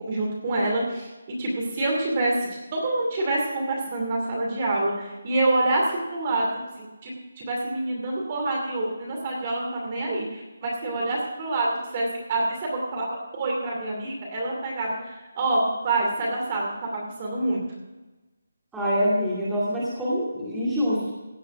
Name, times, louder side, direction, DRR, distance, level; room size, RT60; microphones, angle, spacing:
voice 1, 0.1-6.5 6.8-7.1 7.4-11.7 11.9-17.6, right 2 dB, 25° right, -2 dB, 2.5 m, -27 dB
voice 2, 18.7-21.1, equal, 5° right, -9 dB, 2.3 m, -25 dB
16.5 x 5.5 x 8.6 m, 1.1 s
hypercardioid pair, 175°, 0 cm